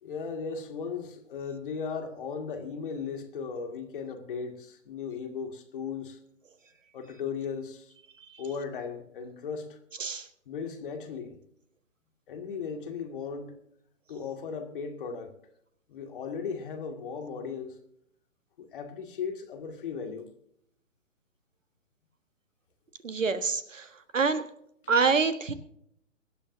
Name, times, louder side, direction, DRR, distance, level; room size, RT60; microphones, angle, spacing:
voice 1, 0.0-6.2 6.9-7.9 8.4-9.8 10.5-11.4 12.3-13.5 14.1-15.3 15.9-17.8 18.6-20.3, left 6 dB, 40° left, 5 dB, 2.2 m, -36 dB
voice 2, 23.0-24.4 24.9-25.5, right 5 dB, 70° right, 11 dB, 1.5 m, -27 dB
23.5 x 9.9 x 2.7 m, 0.73 s
figure-of-eight pair, 130°, 39 cm